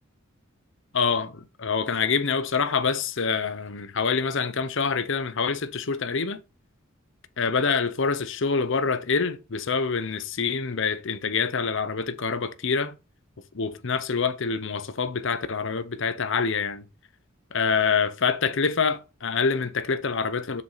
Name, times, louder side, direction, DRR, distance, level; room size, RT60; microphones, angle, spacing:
voice 1, 0.9-6.4 7.4-12.9 13.5-16.8 17.5-20.6, left 5 dB, 65° left, 0.8 m, -26 dB
7.5 x 6.4 x 4.1 m
head